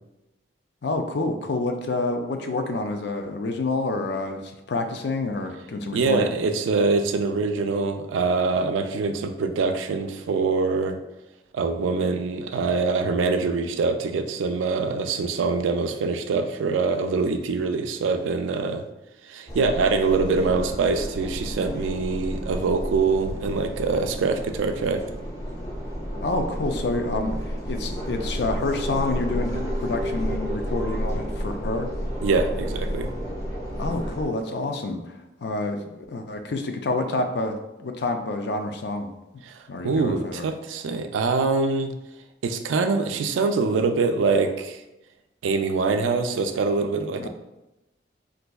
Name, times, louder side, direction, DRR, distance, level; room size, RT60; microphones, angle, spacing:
voice 1, 0.8-6.3 26.2-31.9 33.8-39.1 39.7-40.5 47.2-47.3, left 2 dB, 60° left, 5 dB, 0.4 m, -28 dB
voice 2, 5.9-11.0 11.5-18.8 19.2-25.0 32.2-33.1 39.4-41.9 42.4-44.8 45.4-47.3, right 4 dB, 90° right, 7 dB, 0.3 m, -24 dB
sound 1, 19.5-34.3, equal, 20° left, 0.6 m, -31 dB
4.1 x 2.6 x 2.2 m, 0.95 s
head